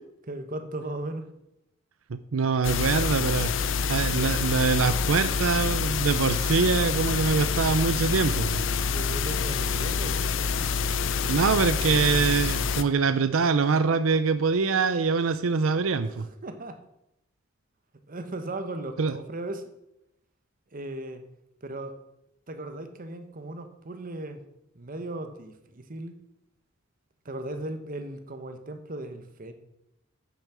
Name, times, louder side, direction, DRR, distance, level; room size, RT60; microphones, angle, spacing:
voice 1, 0.2-1.3 8.9-10.3 16.2-16.8 18.1-19.7 20.7-21.2 21.6-22.0 22.5-24.4 24.7-26.2 27.2-29.5, right 2 dB, 45° right, 8 dB, 1.1 m, -37 dB
voice 2, 2.1-8.6 11.2-16.3 19.0-19.2, right 5 dB, 90° right, 12 dB, 0.6 m, -24 dB
sound 1, 2.6-12.8, left 5 dB, 65° left, 0.6 m, -27 dB
8.5 x 7.1 x 6.2 m, 0.83 s
head